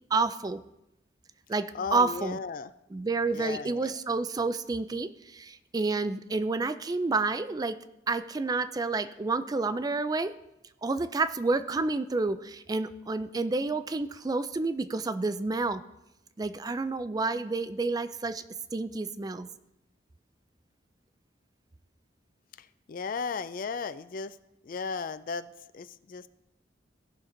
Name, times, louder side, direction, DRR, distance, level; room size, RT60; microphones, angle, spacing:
voice 1, 0.1-0.6 1.5-2.4 2.9-7.8 8.1-10.3 10.8-15.8 16.4-18.4 18.7-19.5, right 3 dB, 20° right, 12 dB, 0.4 m, -29 dB
voice 2, 1.7-2.7 3.3-4.0 22.6-24.4 24.6-26.3, left 5 dB, 50° left, 14 dB, 0.4 m, -36 dB
17.0 x 6.0 x 3.8 m, 0.88 s
head